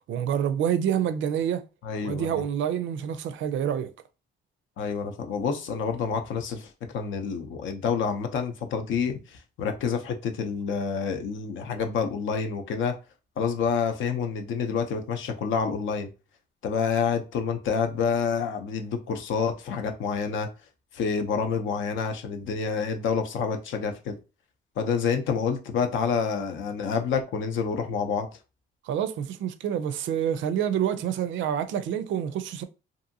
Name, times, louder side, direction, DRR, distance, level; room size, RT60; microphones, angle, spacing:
voice 1, 0.1-1.7 2.0-3.9 28.8-32.6, right 9 dB, 75° right, 0.4 m, -27 dB
voice 2, 1.8-2.4 4.8-13.0 13.4-16.1 16.6-20.5 20.9-24.2 24.8-28.3, left 6 dB, 75° left, 0.6 m, -28 dB
2.7 x 2.6 x 2.6 m
cardioid pair, 90°, 20 cm